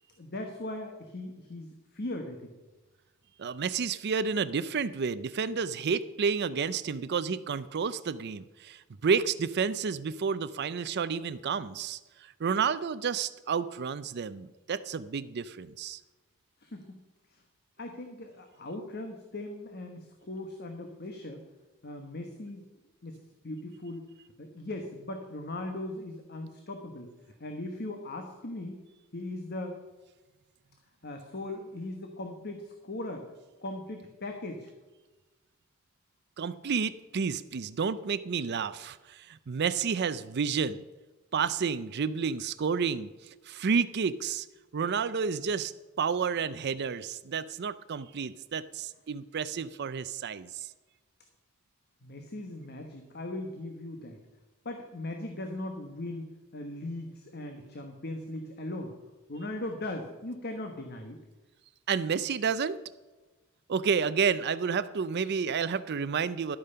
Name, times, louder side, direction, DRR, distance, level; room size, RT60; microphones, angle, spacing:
voice 1, 0.2-2.5 16.6-16.9 17.3-17.4 17.8-21.4 21.8-22.6 23.0-23.2 23.4-24.1 24.4-27.1 27.4-28.8 29.1-29.8 31.0-33.3 33.6-34.7 52.0-54.2 54.6-58.9 59.3-61.2, left 1 dB, 50° left, 4 dB, 1.2 m, -39 dB
voice 2, 3.4-16.0 36.4-40.8 41.3-43.1 43.5-44.5 44.7-45.7 46.0-50.7 61.9-62.8 63.7-66.6, right 6 dB, 55° right, 15 dB, 0.5 m, -30 dB
12.0 x 8.7 x 5.6 m, 1.2 s
head